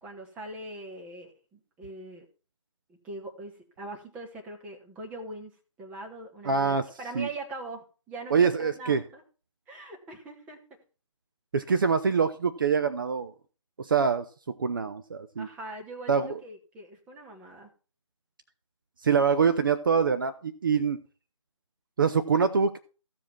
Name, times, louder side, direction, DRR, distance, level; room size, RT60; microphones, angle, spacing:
voice 1, 0.0-2.3 2.9-9.2 9.7-10.8 15.4-17.7, right 2 dB, 10° right, 1.2 m, -42 dB
voice 2, 6.4-6.9 7.1-7.3 8.3-9.0 11.5-13.3 13.8-14.3 14.6-15.5 16.1-16.4 19.0-21.0 22.0-22.8, right 6 dB, 40° right, 0.7 m, -24 dB
15.0 x 5.0 x 6.0 m
figure-of-eight pair, 160°, 17 cm